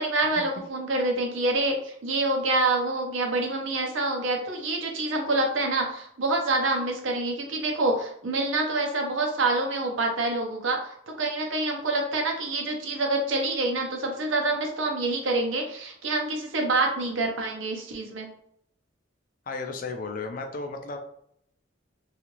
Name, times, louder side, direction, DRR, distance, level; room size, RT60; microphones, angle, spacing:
voice 1, 0.0-18.3, right 2 dB, 75° right, 2 dB, 0.7 m, -27 dB
voice 2, 19.5-21.0, left 3 dB, 45° left, 5 dB, 0.4 m, -34 dB
2.8 x 2.4 x 2.9 m, 0.69 s
head